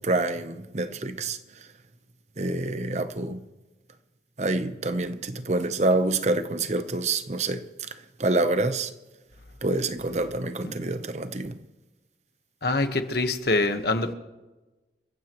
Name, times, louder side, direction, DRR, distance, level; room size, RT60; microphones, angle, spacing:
voice 1, 0.0-1.7 2.4-3.4 4.4-8.9 9.6-11.6, right 2 dB, 40° right, 0.8 m, -27 dB
voice 2, 12.6-14.1, left 2 dB, 60° left, 1.3 m, -25 dB
29.0 x 15.5 x 3.1 m
head